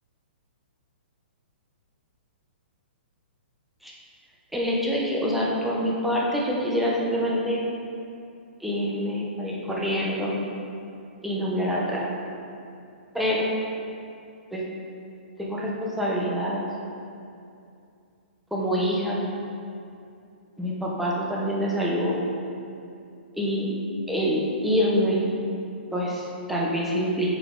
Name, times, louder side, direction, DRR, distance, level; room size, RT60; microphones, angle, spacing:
voice 1, 4.5-7.6 8.6-10.4 11.2-12.1 13.1-13.5 14.5-14.6 15.4-16.7 18.5-19.2 20.6-22.3 23.3-23.8 24.1-25.3 25.9-27.3, equal, ahead, -5 dB, 0.6 m, -26 dB
6.3 x 4.1 x 3.7 m, 2.5 s
hypercardioid pair, 165°, 6 cm